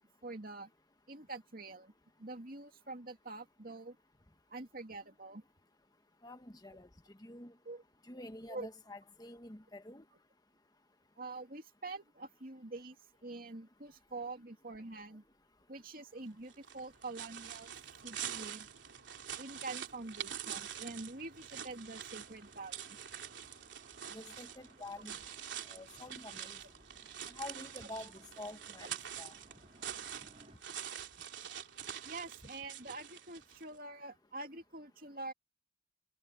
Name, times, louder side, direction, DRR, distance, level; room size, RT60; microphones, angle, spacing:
voice 1, 0.2-0.7 1.1-1.9 2.2-4.0 4.5-5.4 7.7-7.8 8.5-8.7 11.2-13.0 13.2-15.2 15.7-17.7 18.0-18.7 19.4-23.0 28.8-28.9 32.0-35.3, right 3 dB, 50° right, 2.5 m, -46 dB
voice 2, 6.2-6.9 7.2-7.5 8.1-10.0 24.1-25.2 25.7-26.6 27.3-29.3, left 2 dB, 20° left, 1.4 m, -48 dB
sound 1, 16.5-33.7, right 9 dB, 80° right, 3.0 m, -46 dB
sound 2, 22.2-30.6, right 1 dB, 35° right, 4.2 m, -64 dB
head